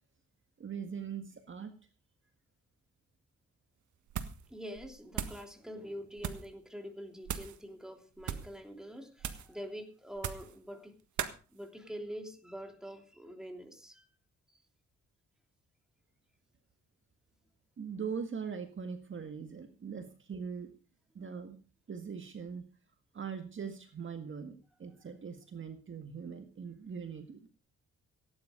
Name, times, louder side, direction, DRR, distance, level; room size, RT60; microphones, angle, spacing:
voice 1, 0.6-1.7 17.8-20.7 21.2-21.6 21.9-22.6 23.1-27.4, right 6 dB, 45° right, 1.8 m, -41 dB
sound 1, 4.1-4.5 4.8-5.5 6.2-6.5 7.2-7.6 8.2-8.6 9.2-9.5 10.2-10.6 11.2-11.4, right 9 dB, 85° right, 1.5 m, -38 dB
voice 2, 4.5-11.0 11.5-14.1 14.5-14.6, equal, ahead, 3.1 m, -45 dB
17.0 x 10.5 x 5.1 m
cardioid pair, 120°, 29 cm